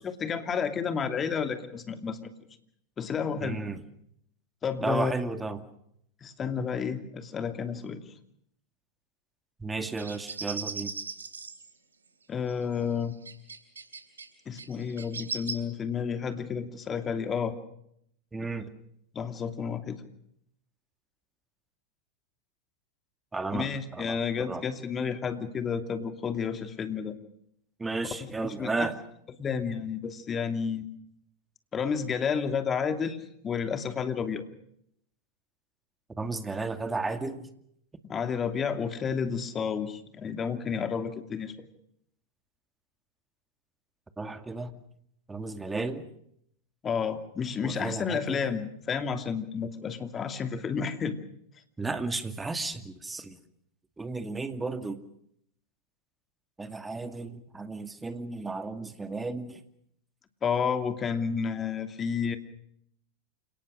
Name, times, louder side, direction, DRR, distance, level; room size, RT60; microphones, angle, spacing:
voice 1, 0.0-2.3 3.0-3.6 4.6-5.1 6.2-8.0 12.3-13.1 14.5-17.6 19.1-20.0 23.5-27.2 28.4-28.9 29.4-30.9 31.7-33.2 33.4-34.4 38.1-41.7 46.8-51.2 60.4-62.4, left 6 dB, 25° left, 8 dB, 2.7 m, -31 dB
voice 2, 3.4-3.8 4.8-5.6 9.6-10.9 18.3-18.7 23.3-24.6 27.8-29.0 36.2-37.5 44.2-44.7 45.3-46.1 47.6-48.4 51.8-53.4 54.0-55.0 56.6-59.6, right 3 dB, 10° right, 9 dB, 2.3 m, -33 dB
sound 1, 10.0-11.7 12.5-12.6 13.2-14.2 14.5-15.5, right 5 dB, 90° right, 3.5 m, -37 dB
28.5 x 18.5 x 6.5 m, 0.71 s
hypercardioid pair, 100°, 0 cm